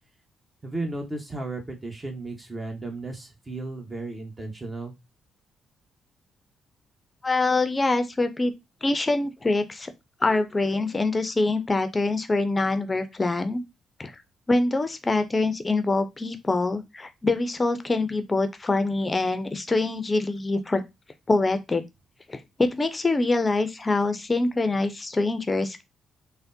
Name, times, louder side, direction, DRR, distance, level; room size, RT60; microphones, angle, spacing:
voice 1, 0.6-4.9, right 2 dB, 30° right, 0.9 m, -34 dB
voice 2, 7.2-8.5 8.8-9.9 10.2-13.6 14.0-14.1 14.5-20.8 21.3-21.8 22.3-25.8, left 3 dB, 30° left, 0.4 m, -24 dB
3.4 x 2.1 x 2.6 m
hypercardioid pair, 45°, 0 cm